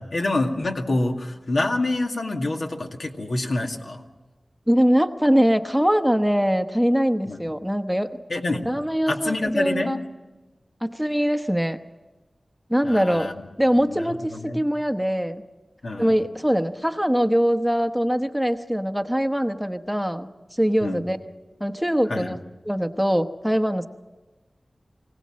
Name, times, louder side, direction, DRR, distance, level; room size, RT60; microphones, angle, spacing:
voice 1, 0.0-4.1 7.3-7.4 8.3-8.7 9.1-10.0 12.8-13.3 13.8-14.6 15.8-16.2 20.8-21.0 22.1-22.4, left 2 dB, 75° left, 2 dB, 2.1 m, -27 dB
voice 2, 4.7-8.1 8.7-10.0 10.8-11.8 12.7-13.3 13.6-15.4 16.0-20.3 20.6-21.2 21.6-22.4 22.7-23.9, equal, ahead, 7 dB, 1.0 m, -22 dB
24.5 x 17.5 x 7.5 m, 1.2 s
wide cardioid pair, 65°, 0 cm